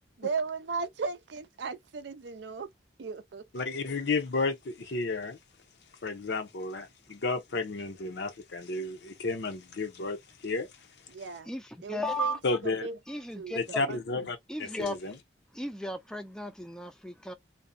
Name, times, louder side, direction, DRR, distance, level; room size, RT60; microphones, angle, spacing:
voice 1, 0.2-2.7 3.0-3.6 11.1-11.5 11.8-13.0 13.3-14.0, right 5 dB, 75° right, 0.5 m, -36 dB
voice 2, 3.5-5.4 6.0-10.2 10.4-10.7 12.4-12.9 13.5-15.2, left 3 dB, 70° left, 0.6 m, -32 dB
voice 3, 11.5-12.4 13.1-13.6 14.5-15.0 15.5-17.3, equal, 5° left, 0.4 m, -35 dB
2.5 x 2.0 x 2.5 m
head